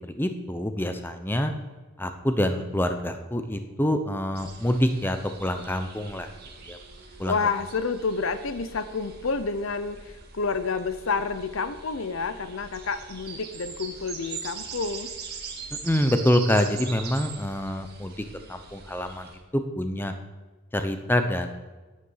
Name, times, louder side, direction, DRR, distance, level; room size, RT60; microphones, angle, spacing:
voice 1, 0.1-1.5 2.0-6.3 6.6-6.8 7.2-7.4 15.8-18.1 18.5-20.1 20.7-21.5, left 1 dB, 10° left, 7 dB, 0.7 m, -26 dB
sound 1, 4.3-19.4, right 5 dB, 50° right, 1.9 m, -42 dB
voice 2, 7.3-15.1, left 4 dB, 70° left, 12 dB, 0.7 m, -29 dB
9.9 x 9.8 x 5.6 m, 1.2 s
head